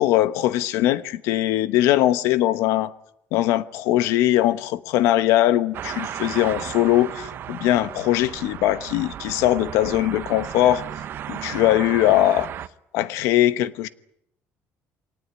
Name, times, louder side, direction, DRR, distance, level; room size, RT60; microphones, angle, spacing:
voice 1, 0.0-2.9 3.3-10.8 11.3-12.5 12.9-13.9, left 14 dB, 90° left, 1.0 m, -21 dB
sound 1, 5.7-12.7, right 10 dB, 50° right, 0.9 m, -34 dB
23.5 x 19.0 x 9.6 m
cardioid pair, 135°, 5 cm